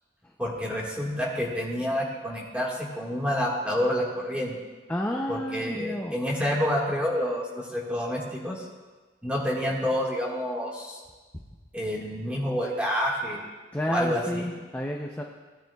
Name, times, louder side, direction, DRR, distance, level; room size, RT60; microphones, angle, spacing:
voice 1, 0.4-4.5 5.3-8.7 9.2-11.0 11.7-13.4 13.9-14.5, equal, 5° right, -3 dB, 1.7 m, -28 dB
voice 2, 4.9-6.2 11.3-11.4 13.7-15.2, left 1 dB, 10° left, -1 dB, 0.6 m, -30 dB
17.0 x 10.5 x 2.3 m, 1.3 s
head